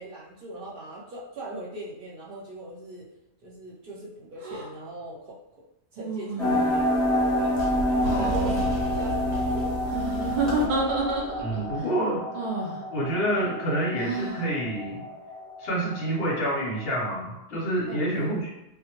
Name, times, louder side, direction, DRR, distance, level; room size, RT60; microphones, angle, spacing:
voice 1, 0.0-3.1 3.4-5.4 5.9-7.5 7.9-10.1 17.9-18.4, right 1 dB, 50° right, -6 dB, 0.9 m, -40 dB
sound 1, 4.4-4.7 6.0-6.8 8.0-8.5 9.9-11.6 12.3-12.8 14.0-14.5, right 2 dB, 65° right, 0.4 m, -30 dB
sound 2, 6.4-17.1, left 1 dB, ahead, 0.8 m, -29 dB
sound 3, 6.8-11.8, right 1 dB, 85° right, 1.0 m, -35 dB
voice 2, 8.0-8.6 11.4-12.2 12.9-15.0 15.6-18.5, right 1 dB, 55° left, -4 dB, 0.8 m, -28 dB
2.2 x 2.1 x 2.9 m, 0.91 s
omnidirectional pair, 1.4 m